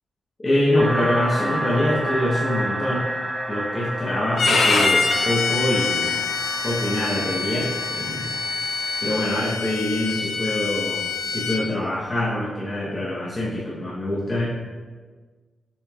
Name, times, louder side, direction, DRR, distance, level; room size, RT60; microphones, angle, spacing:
voice 1, 0.4-3.1 3.5-6.2 6.6-8.3 9.0-14.4, left 1 dB, 25° left, -8 dB, 0.8 m, -24 dB
sound 1, 0.8-9.4, right 1 dB, 15° right, 1.2 m, -30 dB
Bowed string instrument, 4.4-11.6, left 4 dB, 60° left, 0.5 m, -25 dB
7.0 x 3.2 x 2.3 m, 1.4 s
wide cardioid pair, 140°, 0 cm